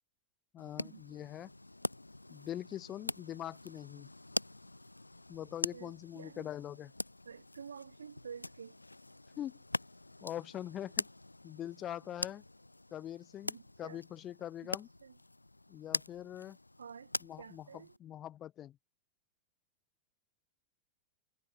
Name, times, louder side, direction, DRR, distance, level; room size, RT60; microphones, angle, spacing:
voice 1, 0.5-1.5 2.3-4.1 5.3-6.9 9.4-9.6 10.2-11.1 11.4-12.4 12.9-14.9 15.7-16.6 17.2-18.8, left 11 dB, 30° left, 1.1 m, -43 dB
sound 1, 0.6-18.0, left 2 dB, 85° left, 0.4 m, -43 dB
voice 2, 5.7-6.5 7.2-8.8 13.5-14.0 14.6-14.7 15.0-15.2 16.8-17.1 17.4-17.9, right 6 dB, 70° right, 2.1 m, -50 dB
figure-of-eight pair, 90°, 0 cm